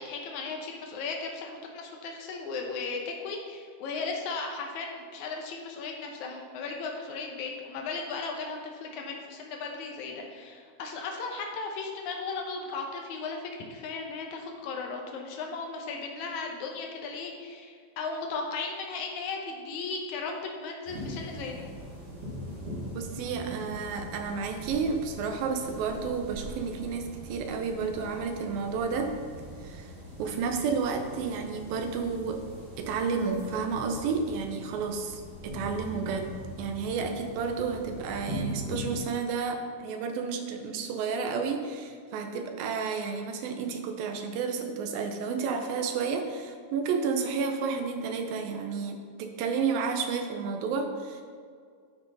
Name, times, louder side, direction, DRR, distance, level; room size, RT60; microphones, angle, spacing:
voice 1, 0.0-21.7, left 4 dB, 75° left, 1 dB, 1.8 m, -36 dB
sound 1, 20.9-39.0, equal, 45° right, 2.6 m, -41 dB
voice 2, 22.9-29.1 29.6-29.9 30.2-32.4 32.8-36.3 36.6-51.2, right 5 dB, 75° right, 5 dB, 2.5 m, -31 dB
11.0 x 6.0 x 4.1 m, 2.1 s
omnidirectional pair, 4.4 m